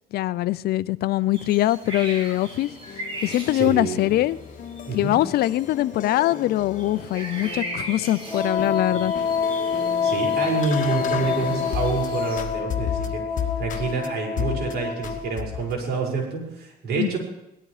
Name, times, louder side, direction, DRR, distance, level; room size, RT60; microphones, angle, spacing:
voice 1, 0.1-2.7 3.2-4.4 4.9-9.1 17.0-17.2, left 15 dB, 70° left, 18 dB, 0.5 m, -23 dB
sound 1, 1.3-12.4, right 1 dB, 30° right, 5.0 m, -39 dB
sound 2, 2.3-12.1 12.4-14.1 14.4-14.7 15.0-15.8, left 9 dB, 50° left, 1.6 m, -34 dB
voice 2, 3.2-4.0 4.9-5.2 10.0-13.2 13.6-17.2, right 4 dB, 70° right, -1 dB, 5.9 m, -28 dB
Wind instrument woodwind instrument, 8.3-15.6, left 6 dB, 20° left, 1.8 m, -27 dB
18.0 x 12.5 x 5.0 m, 0.89 s
cardioid pair, 110°, 17 cm